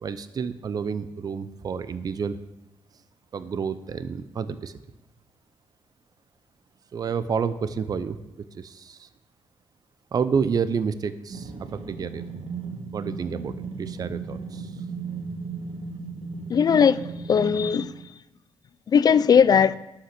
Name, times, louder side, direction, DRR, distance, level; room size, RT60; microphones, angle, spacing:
voice 1, 0.0-2.4 3.3-4.8 6.9-8.2 8.5-9.1 10.1-12.2 12.9-14.8, right 6 dB, 40° right, 0.5 m, -29 dB
sound 1, 11.3-18.0, right 4 dB, 70° right, 1.4 m, -36 dB
voice 2, 16.5-17.0 17.3-17.9 18.9-19.8, left 7 dB, 45° left, 0.4 m, -18 dB
11.5 x 5.7 x 5.9 m
cardioid pair, 100°, 9 cm